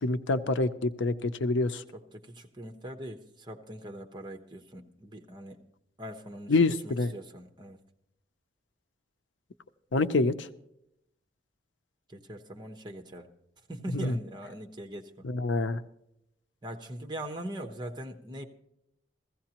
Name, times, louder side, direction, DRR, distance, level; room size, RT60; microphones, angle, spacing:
voice 1, 0.0-1.8 6.5-7.1 9.9-10.5 13.9-14.2 15.2-15.8, left 3 dB, 90° left, 11 dB, 0.6 m, -26 dB
voice 2, 1.9-5.6 6.0-7.8 12.1-13.3 13.7-15.3 16.6-18.5, right 1 dB, 25° right, 5 dB, 1.0 m, -41 dB
15.5 x 15.5 x 2.9 m, 0.79 s
head